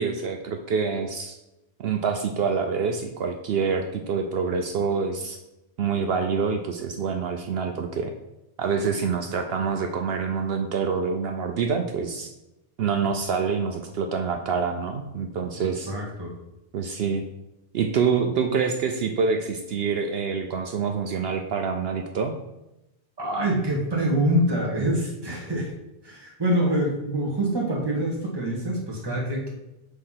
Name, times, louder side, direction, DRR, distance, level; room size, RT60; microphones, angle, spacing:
voice 1, 0.0-1.4 1.8-5.4 5.8-8.1 8.6-12.3 12.8-15.9 16.7-17.2 17.7-22.3, right 5 dB, 65° right, 4 dB, 0.8 m, -26 dB
voice 2, 15.6-16.3 23.2-25.7 26.0-29.5, right 1 dB, 20° right, -2 dB, 1.4 m, -25 dB
6.5 x 3.2 x 5.6 m, 0.92 s
omnidirectional pair, 1.2 m